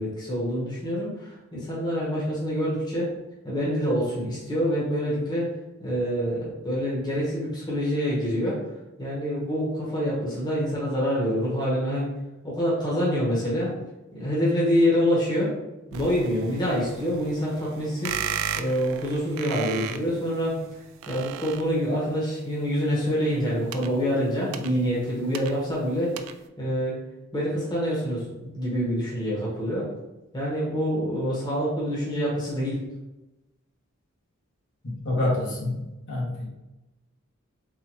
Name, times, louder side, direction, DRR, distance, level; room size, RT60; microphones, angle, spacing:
voice 1, 0.0-3.1 3.4-5.5 5.8-8.6 9.0-12.1 12.4-13.8 14.1-15.5 15.9-18.2 18.5-20.6 21.1-26.3 26.6-27.0 27.3-29.9 30.3-32.8, equal, 20° left, -6 dB, 1.1 m, -26 dB
sound 1, 15.9-22.1 23.3-25.9 26.2-26.5, right 8 dB, 80° right, 0.3 m, -36 dB
voice 2, 35.0-36.5, left 2 dB, 60° left, -5 dB, 1.3 m, -27 dB
4.0 x 2.5 x 3.0 m, 0.99 s
head